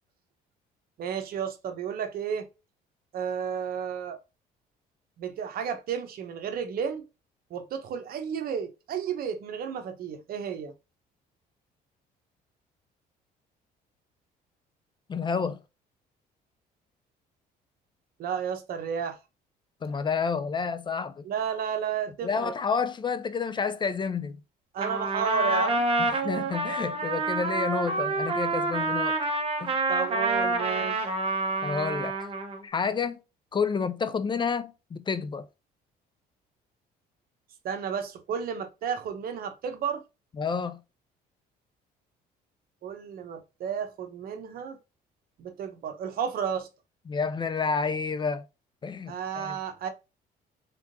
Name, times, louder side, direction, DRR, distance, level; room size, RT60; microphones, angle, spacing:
voice 1, 1.0-2.5 3.1-4.2 5.2-7.0 7.5-10.7 18.2-19.2 21.2-22.5 24.7-25.8 29.9-31.1 37.6-40.0 42.8-44.8 45.4-46.7 49.1-49.9, right 7 dB, 60° right, 1.0 m, -32 dB
voice 2, 15.1-15.6 19.8-21.2 22.2-24.4 26.0-29.2 29.6-29.7 31.6-32.3 32.6-33.2 33.5-35.5 40.4-40.8 47.1-48.5 48.8-49.6, left 5 dB, 30° left, 0.4 m, -29 dB
Trumpet, 24.8-32.6, right 2 dB, 35° right, 1.1 m, -28 dB
3.8 x 3.5 x 2.6 m
cardioid pair, 110°, 17 cm